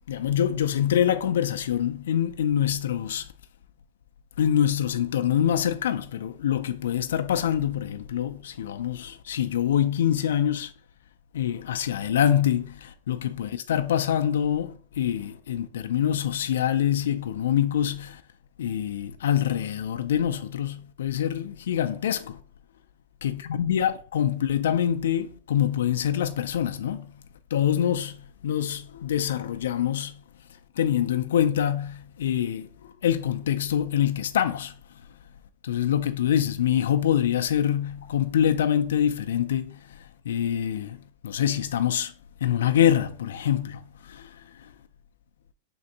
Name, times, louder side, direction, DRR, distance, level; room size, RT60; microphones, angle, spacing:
voice 1, 0.1-3.3 4.4-10.7 11.3-18.2 18.6-22.4 23.2-27.1 27.5-28.2 28.4-30.2 30.8-34.7 35.6-39.8 40.3-41.0 41.2-42.1 42.4-44.3, left 10 dB, 85° left, 0.3 m, -25 dB
3.6 x 2.5 x 4.0 m
supercardioid pair, 145°, 0 cm